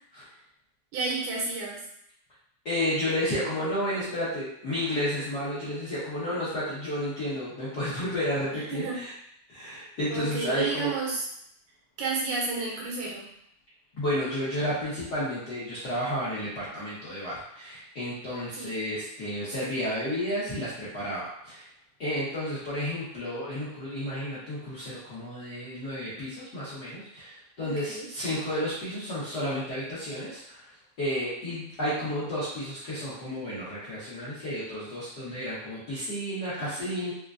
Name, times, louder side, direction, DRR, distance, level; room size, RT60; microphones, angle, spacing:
voice 1, 0.9-1.9 8.7-9.0 10.1-11.2 12.0-13.3 18.6-18.7 27.6-28.1 36.6-36.9, right 3 dB, 85° right, -3 dB, 2.3 m, -32 dB
voice 2, 2.6-9.1 9.5-10.9 14.0-21.7 22.0-30.7 31.0-37.1, equal, 60° left, -12 dB, 1.0 m, -31 dB
5.0 x 2.2 x 2.4 m, 0.72 s
omnidirectional pair, 3.3 m